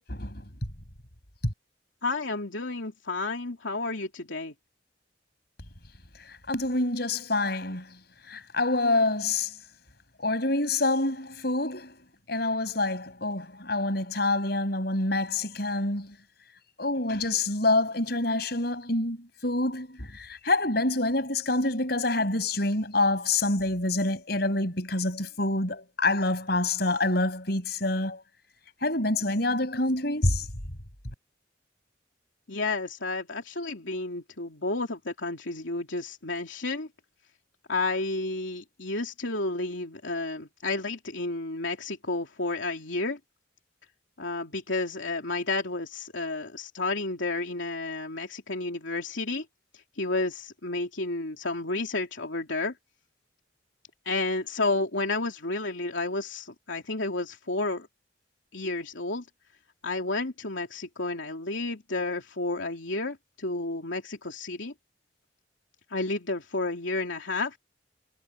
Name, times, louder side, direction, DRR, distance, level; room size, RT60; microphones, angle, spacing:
voice 1, 0.1-0.4 6.5-7.9 8.3-9.5 10.2-11.9 12.3-16.1 16.8-28.2 28.8-30.5, left 2 dB, 55° left, 7.0 m, -27 dB
voice 2, 2.0-4.5 32.5-36.9 37.7-43.2 44.2-49.4 50.0-52.7 54.0-57.9 58.5-59.3 59.8-64.7 65.9-67.6, left 2 dB, 85° left, 3.0 m, -31 dB
head